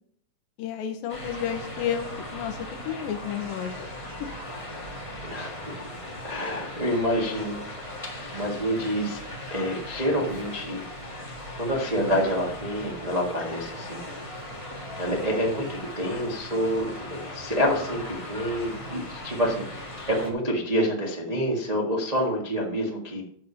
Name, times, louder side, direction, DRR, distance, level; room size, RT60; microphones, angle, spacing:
voice 1, 0.6-3.9, left 8 dB, 85° left, 5 dB, 2.7 m, -31 dB
sound 1, 1.1-20.3, left 1 dB, 30° left, 0.6 m, -38 dB
voice 2, 5.3-5.9 6.2-7.6 8.3-9.2 9.5-10.8 11.6-14.0 15.0-19.6 20.1-23.2, equal, 70° right, -2 dB, 0.3 m, -27 dB
10.0 x 6.8 x 5.7 m, 0.64 s
omnidirectional pair, 4.0 m